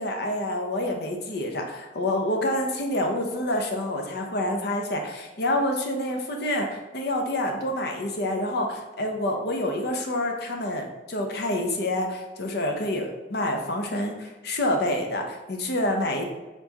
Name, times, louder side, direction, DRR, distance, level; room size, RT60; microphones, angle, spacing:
voice 1, 0.0-16.2, left 1 dB, 65° left, 3 dB, 0.7 m, -27 dB
4.3 x 4.0 x 2.9 m, 1.2 s
head